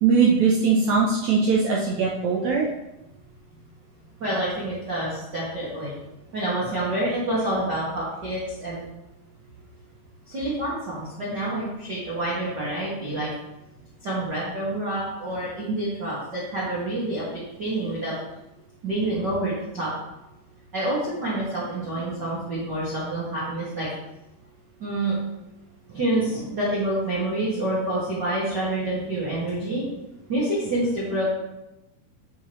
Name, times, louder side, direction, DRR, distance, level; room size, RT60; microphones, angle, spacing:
voice 1, 0.0-2.7, right 5 dB, 80° right, -3 dB, 1.6 m, -20 dB
voice 2, 4.2-5.9 6.3-8.8 10.3-13.3 14.0-17.2 17.6-18.2 18.8-19.9 20.7-23.9 24.8-25.2 25.9-29.8 30.3-31.2, right 1 dB, 40° right, -8 dB, 1.5 m, -27 dB
9.5 x 4.9 x 3.1 m, 0.94 s
omnidirectional pair, 4.3 m